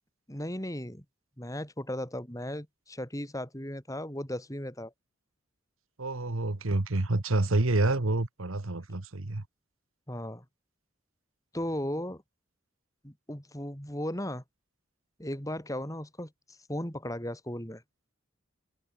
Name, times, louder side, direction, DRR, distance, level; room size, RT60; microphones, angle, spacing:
voice 1, 0.3-1.0 1.4-4.9 10.1-10.4 11.5-12.2 13.0-14.4 15.2-16.3 16.7-17.8, left 1 dB, 15° left, 4.8 m, -36 dB
voice 2, 6.0-9.4, right 2 dB, 90° right, 1.4 m, -28 dB
head